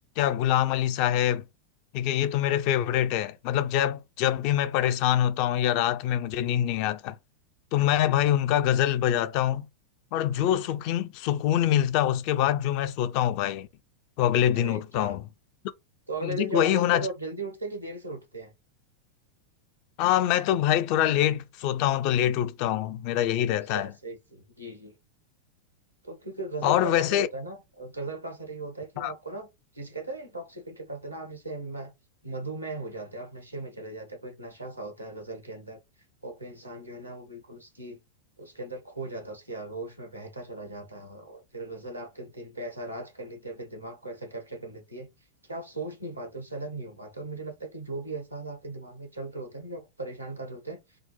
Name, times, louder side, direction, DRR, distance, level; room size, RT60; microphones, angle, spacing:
voice 1, 0.2-1.4 1.9-7.1 7.7-9.7 10.1-13.7 14.2-15.2 16.2-17.1 20.0-23.9 26.6-27.3 29.0-29.1, left 11 dB, 45° left, 0.4 m, -25 dB
voice 2, 14.5-15.2 16.1-18.5 23.7-24.9 26.0-29.5 29.7-31.9 32.2-35.8 36.2-38.0 38.4-45.1 45.4-50.8, right 2 dB, 85° right, 1.1 m, -38 dB
3.7 x 2.0 x 4.3 m
figure-of-eight pair, 90°, 0 cm